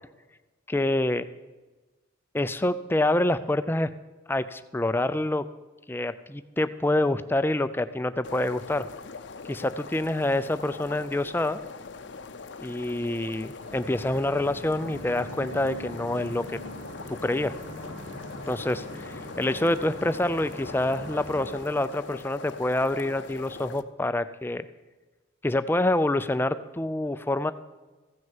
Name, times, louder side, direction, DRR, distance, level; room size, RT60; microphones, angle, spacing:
voice 1, 0.7-1.2 2.3-3.9 4.3-5.5 5.9-8.8 9.5-11.6 12.6-16.6 17.1-17.5 18.5-24.6 25.4-27.5, left 1 dB, 10° left, 12 dB, 0.3 m, -27 dB
sound 1, 8.2-23.8, left 4 dB, 60° left, 0.6 m, -42 dB
sound 2, 13.6-21.6, equal, 85° right, 3.9 m, -42 dB
15.0 x 6.3 x 7.3 m, 1.2 s
head